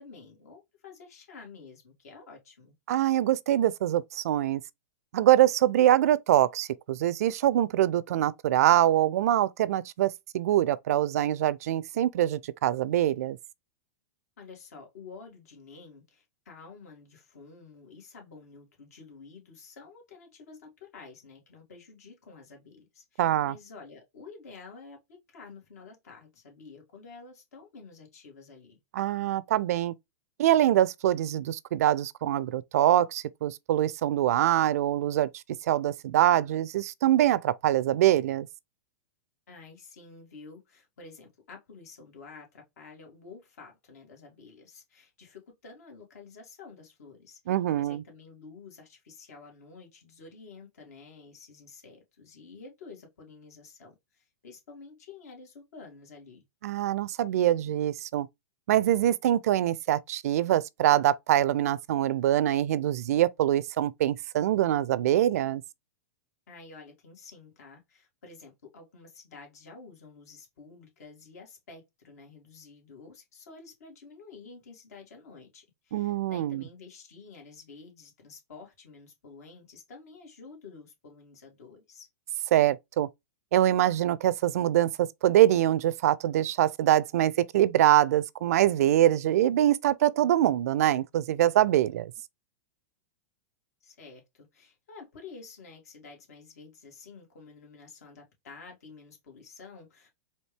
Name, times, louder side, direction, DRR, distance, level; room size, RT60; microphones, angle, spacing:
voice 1, 0.0-2.7 14.4-28.8 39.5-56.4 66.5-82.1 93.8-100.1, left 4 dB, 75° left, 2.1 m, -50 dB
voice 2, 2.9-4.6 5.1-13.4 23.2-23.6 28.9-29.9 30.4-35.3 35.6-38.5 47.5-48.0 56.6-58.3 58.7-65.6 75.9-76.6 82.5-83.1 83.5-92.1, right 12 dB, 70° right, 0.4 m, -24 dB
4.3 x 2.7 x 3.3 m
hypercardioid pair, 125°, 9 cm